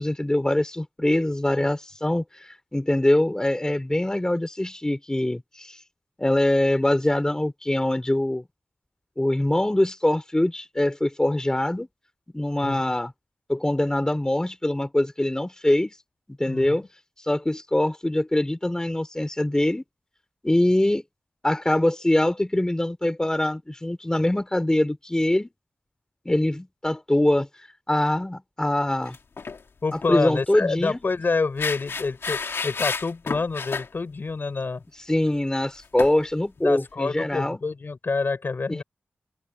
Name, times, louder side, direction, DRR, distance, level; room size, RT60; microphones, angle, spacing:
voice 1, 0.0-5.8 6.2-8.5 9.2-11.9 12.3-13.1 13.5-15.9 16.4-16.9 17.2-19.8 20.4-21.0 21.4-25.5 26.3-29.2 29.9-31.0 35.1-37.6 38.7-38.8, left 1 dB, 15° left, 3.7 m, -23 dB
voice 2, 12.6-12.9 16.5-16.8 29.8-34.8 36.6-38.8, left 4 dB, 60° left, 4.7 m, -27 dB
sound 1, 29.0-29.6 29.9-30.1 31.6-33.9 36.0-36.1, left 5 dB, 85° left, 2.8 m, -30 dB
wide cardioid pair, 80°, 4 cm